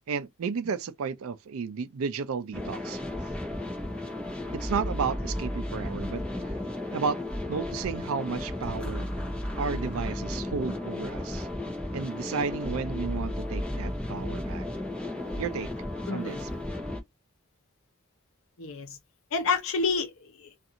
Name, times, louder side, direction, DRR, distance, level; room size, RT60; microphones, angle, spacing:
voice 1, 0.1-3.0 4.5-6.2 6.9-7.2 7.5-9.1 9.6-11.5 11.9-14.7 15.4-15.7 16.1-16.5, right 5 dB, 75° right, 0.4 m, -33 dB
sound 1, 2.5-17.0, left 1 dB, 5° left, 0.7 m, -34 dB
voice 2, 16.1-16.4 18.6-19.0 19.3-20.5, left 4 dB, 70° left, 0.7 m, -29 dB
2.5 x 2.4 x 2.7 m
head